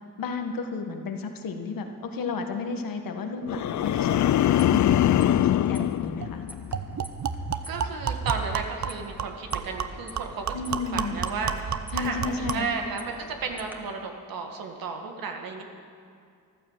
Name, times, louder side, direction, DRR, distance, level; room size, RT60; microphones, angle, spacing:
voice 1, 0.2-6.4 10.5-11.2 11.9-12.7, left 4 dB, 75° left, 5 dB, 1.5 m, -32 dB
sound 1, 3.5-6.9 7.3-7.7, left 12 dB, 60° left, 0.4 m, -23 dB
sound 2, 3.7-13.7, left 1 dB, 5° right, 1.5 m, -48 dB
sound 3, 5.8-5.9 6.2-6.3 6.7-12.7, right 8 dB, 55° right, 0.8 m, -32 dB
voice 2, 7.7-15.6, right 5 dB, 85° right, 3 dB, 1.8 m, -34 dB
14.0 x 12.5 x 7.4 m, 2.3 s
cardioid pair, 80°, 34 cm